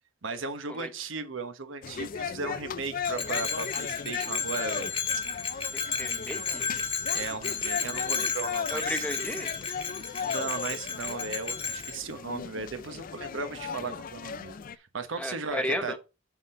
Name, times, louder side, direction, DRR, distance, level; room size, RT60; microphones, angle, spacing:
voice 1, 0.2-4.9 5.5-5.7 7.1-9.0 10.2-16.0, right 4 dB, 80° right, 1.1 m, -36 dB
sound 1, 1.8-14.8, left 6 dB, 45° left, 0.4 m, -37 dB
Bell, 3.0-12.0, left 5 dB, 30° left, 1.2 m, -33 dB
voice 2, 5.7-6.6 8.7-9.5 15.2-16.0, left 1 dB, 5° left, 0.9 m, -33 dB
7.1 x 4.0 x 5.4 m
head